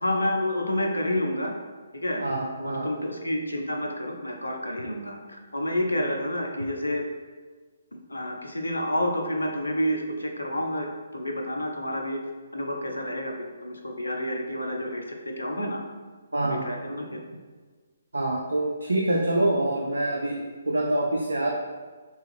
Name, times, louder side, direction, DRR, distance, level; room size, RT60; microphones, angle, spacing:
voice 1, 0.0-1.5 1.9-2.3 2.6-7.0 8.1-10.9 11.1-12.2 12.5-13.3 13.6-15.8 16.4-17.2, left 1 dB, 80° left, 3 dB, 0.5 m, -29 dB
voice 2, 2.2-2.9 16.3-16.8 18.1-21.5, right 1 dB, 75° right, -1 dB, 0.4 m, -26 dB
3.4 x 3.1 x 3.1 m, 1.4 s
figure-of-eight pair, 135°, 0 cm